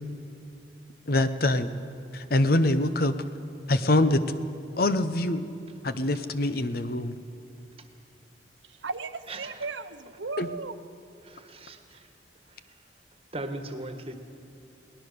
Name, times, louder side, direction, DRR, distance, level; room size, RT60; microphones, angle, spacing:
voice 1, 1.1-1.7 2.1-3.1 3.7-4.2 4.8-5.5 5.8-7.1 10.4-10.5, left 1 dB, 55° left, 0.9 m, -24 dB
voice 2, 8.6-10.8, right 4 dB, 80° right, 0.9 m, -36 dB
voice 3, 9.3-9.6 11.2-12.1 12.5-12.6 13.3-14.1, right 2 dB, 30° right, 1.5 m, -38 dB
22.0 x 18.5 x 6.8 m
head